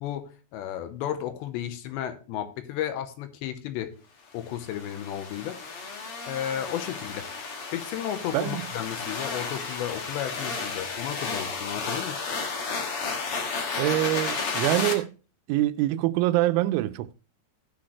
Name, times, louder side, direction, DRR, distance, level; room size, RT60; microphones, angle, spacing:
voice 1, 0.0-3.9 4.3-7.3 7.7-12.2, left 10 dB, 80° left, 3.0 m, -33 dB
sound 1, 4.5-14.9, left 4 dB, 60° left, 1.4 m, -33 dB
voice 2, 8.3-8.7 13.8-15.1 15.5-17.1, right 16 dB, 85° right, 3.0 m, -25 dB
16.0 x 6.3 x 3.1 m
omnidirectional pair, 5.3 m